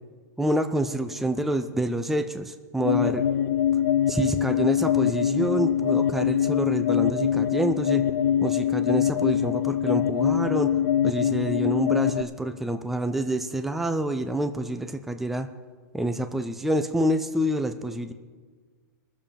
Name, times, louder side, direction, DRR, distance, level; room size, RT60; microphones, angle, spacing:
voice 1, 0.4-3.2 4.1-8.1 8.4-10.8 11.0-15.5 15.9-18.1, right 1 dB, ahead, 8 dB, 0.5 m, -27 dB
sound 1, 2.8-12.2, left 9 dB, 75° left, 0.6 m, -23 dB
21.0 x 7.1 x 5.2 m, 1.5 s
hypercardioid pair, 150°, 10 cm